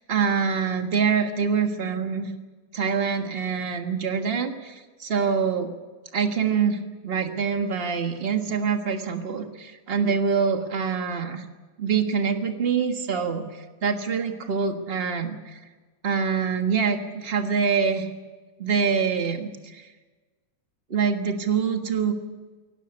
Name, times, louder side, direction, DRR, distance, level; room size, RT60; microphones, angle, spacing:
voice 1, 0.0-2.3 2.7-5.7 6.1-11.4 11.8-13.4 13.8-15.6 16.0-18.1 18.6-19.8 20.9-22.2, right 6 dB, 30° right, 6 dB, 1.1 m, -25 dB
18.0 x 17.5 x 9.9 m, 1.3 s
omnidirectional pair, 3.3 m